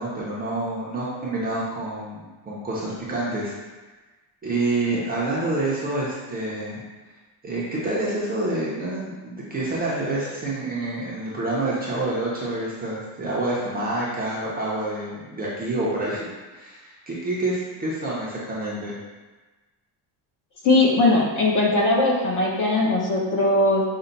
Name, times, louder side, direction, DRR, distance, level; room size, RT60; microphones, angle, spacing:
voice 1, 0.0-3.5 4.4-6.8 7.4-19.0, right 2 dB, 20° right, -7 dB, 0.5 m, -28 dB
voice 2, 20.6-23.8, left 2 dB, 40° left, -2 dB, 0.8 m, -19 dB
5.4 x 2.1 x 3.9 m, 1.2 s
cardioid pair, 170°, 47 cm